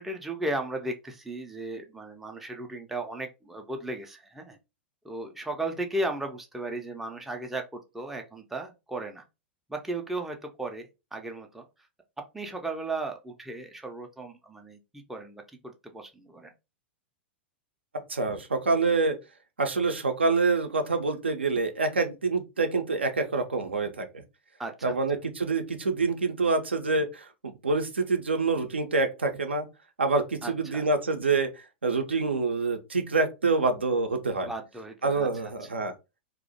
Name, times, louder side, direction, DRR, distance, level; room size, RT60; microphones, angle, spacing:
voice 1, 0.0-4.6 5.0-9.2 9.7-10.9 11.1-11.6 12.3-16.5 24.6-25.0 30.4-30.9 34.4-35.3 35.6-35.7, right 2 dB, 5° right, 0.3 m, -35 dB
voice 2, 18.1-19.2 19.6-24.2 24.8-29.7 30.0-31.5 31.8-34.5 35.0-35.9, right 3 dB, 75° right, 0.4 m, -26 dB
2.4 x 2.0 x 2.6 m
figure-of-eight pair, 95°, 6 cm